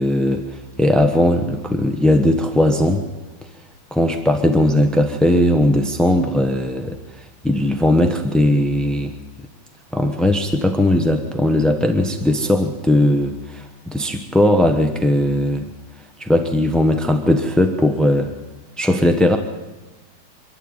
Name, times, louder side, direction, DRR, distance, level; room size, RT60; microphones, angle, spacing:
voice 1, 0.0-3.0 3.9-7.0 7.4-9.1 9.9-15.7 16.2-18.3 18.8-19.4, left 1 dB, ahead, 5 dB, 0.6 m, -18 dB
26.5 x 11.5 x 9.0 m, 1.1 s
omnidirectional pair, 2.3 m